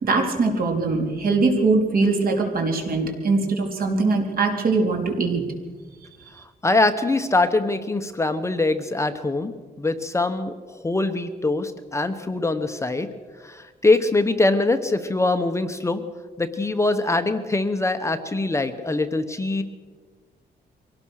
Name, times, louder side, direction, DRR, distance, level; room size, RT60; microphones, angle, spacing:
voice 1, 0.0-5.4, right 3 dB, 55° right, 2 dB, 3.9 m, -22 dB
voice 2, 6.6-13.1 13.4-16.0 16.4-19.6, left 2 dB, 15° left, 8 dB, 1.0 m, -23 dB
24.0 x 17.5 x 6.5 m, 1.4 s
wide cardioid pair, 145°, 18 cm